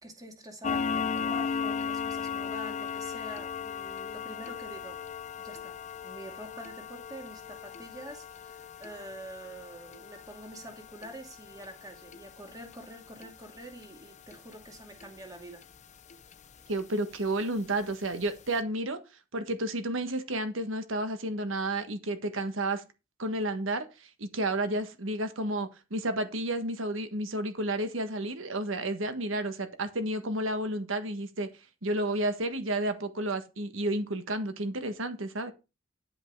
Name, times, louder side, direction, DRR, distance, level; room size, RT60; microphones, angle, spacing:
voice 1, 0.0-5.0 5.4-15.6, right 1 dB, 20° right, 2.2 m, -46 dB
sound 1, 0.6-15.8 16.1-16.3 16.8-16.9 17.3-17.4 17.9-18.0 18.3-18.4, left 6 dB, 40° left, 0.7 m, -37 dB
voice 2, 16.7-19.0 19.3-22.8 23.2-23.9 24.2-31.5 31.8-35.5, right 1 dB, 85° right, 1.4 m, -31 dB
10.5 x 5.5 x 4.6 m
head